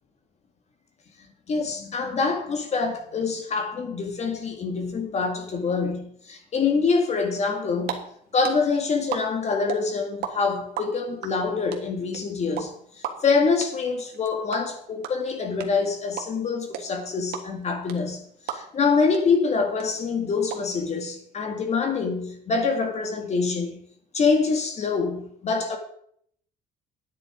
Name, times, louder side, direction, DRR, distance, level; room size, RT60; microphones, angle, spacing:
voice 1, 1.5-8.0 8.3-23.8 24.1-25.8, left 4 dB, 40° left, 1.9 m, -25 dB
sound 1, 7.5-7.9 8.2-10.3 10.6-18.9 19.1-19.2 19.5-20.5, right 12 dB, 80° right, 1.5 m, -34 dB
10.0 x 9.0 x 5.0 m
cardioid pair, 110°, 17 cm